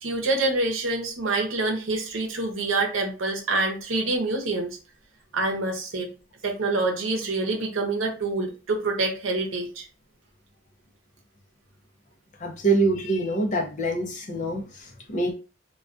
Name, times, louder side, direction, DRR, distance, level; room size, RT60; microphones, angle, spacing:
voice 1, 0.0-4.8 5.3-6.1 6.4-9.8, right 2 dB, 85° right, 2 dB, 0.7 m, -26 dB
voice 2, 12.4-15.3, right 2 dB, 40° left, 1 dB, 0.5 m, -25 dB
2.2 x 2.2 x 2.5 m, 0.33 s
head